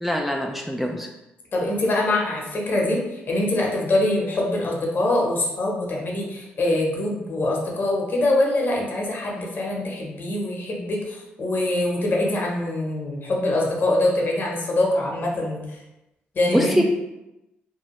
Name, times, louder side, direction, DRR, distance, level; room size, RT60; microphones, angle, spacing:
voice 1, 0.0-1.1 16.5-16.8, equal, 5° right, 0 dB, 0.4 m, -23 dB
voice 2, 1.5-15.8 16.3-16.8, left 1 dB, 50° left, -2 dB, 1.0 m, -24 dB
2.7 x 2.3 x 3.0 m, 0.96 s
supercardioid pair, 55°, 4 cm